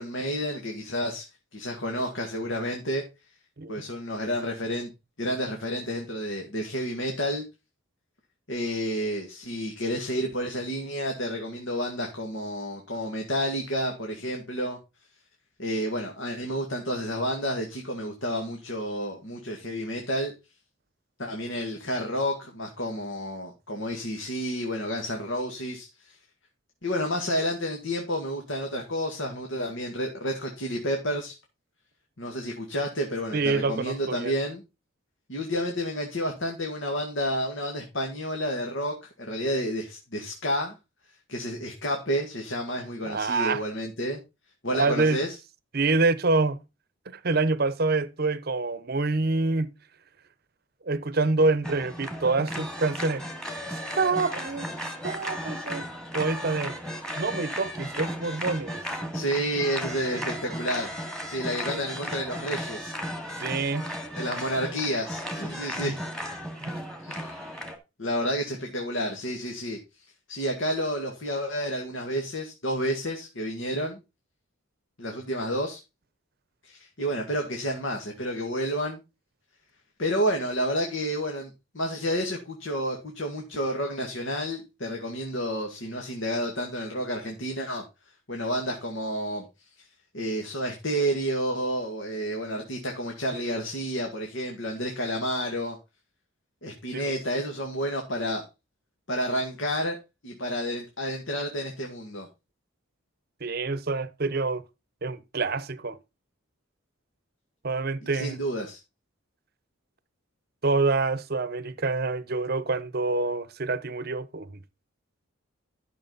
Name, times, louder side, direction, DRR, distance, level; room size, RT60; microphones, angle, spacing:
voice 1, 0.0-3.0 3.7-4.9 5.2-7.4 8.5-14.8 15.6-20.3 21.2-26.2 26.8-31.4 32.2-34.6 35.3-40.8 41.3-44.2 44.6-45.4 59.1-60.9 61.3-62.9 64.1-66.0 67.0-67.6 68.0-74.0 75.0-75.8 76.6-79.0 80.0-81.5 81.7-87.8 88.3-89.5 89.8-89.9 90.1-95.8 96.6-98.4 99.1-100.0 100.2-102.3 108.0-108.8, equal, 65° left, 2.0 m, -30 dB
voice 2, 33.3-34.4 43.0-43.6 44.7-45.2 45.7-46.6 47.1-49.7 50.9-53.2 53.7-54.7 55.0-55.9 56.1-56.7 57.2-58.8 61.7-61.8 63.4-63.9 65.8-65.9 66.6-66.7 93.3-93.4 96.9-97.0 103.4-104.6 105.0-106.0 107.6-108.4 110.6-114.6, right 3 dB, 45° right, 0.8 m, -26 dB
sound 1, 51.6-67.8, equal, 5° left, 2.1 m, -35 dB
12.5 x 6.4 x 4.0 m
head